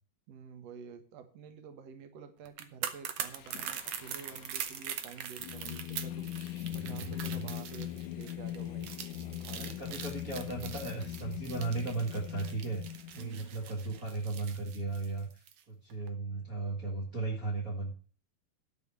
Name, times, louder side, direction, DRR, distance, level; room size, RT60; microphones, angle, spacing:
voice 1, 0.3-6.3 6.7-8.9 9.2-10.0 13.1-13.5, right 6 dB, 55° right, 6 dB, 2.2 m, -49 dB
sound 1, 2.4-15.6 15.9-16.1, right 9 dB, 90° right, 1.3 m, -42 dB
Singing, 3.2-13.7, left 13 dB, 80° left, 1.9 m, -41 dB
voice 2, 6.8-7.4 9.6-12.8 13.1-17.9, right 3 dB, 35° right, -3 dB, 1.5 m, -36 dB
12.5 x 4.8 x 8.2 m, 0.41 s
omnidirectional pair, 4.2 m